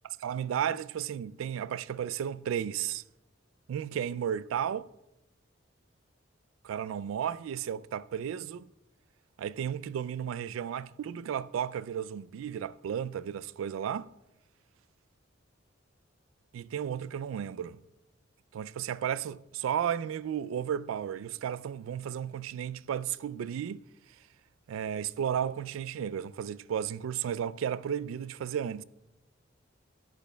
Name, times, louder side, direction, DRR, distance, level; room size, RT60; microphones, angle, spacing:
voice 1, 0.2-3.0 3.7-4.9 6.6-8.7 9.4-14.1 16.5-17.8 18.5-23.8 24.7-28.8, right 9 dB, 85° right, 0.3 m, -33 dB
13.5 x 10.5 x 2.2 m
head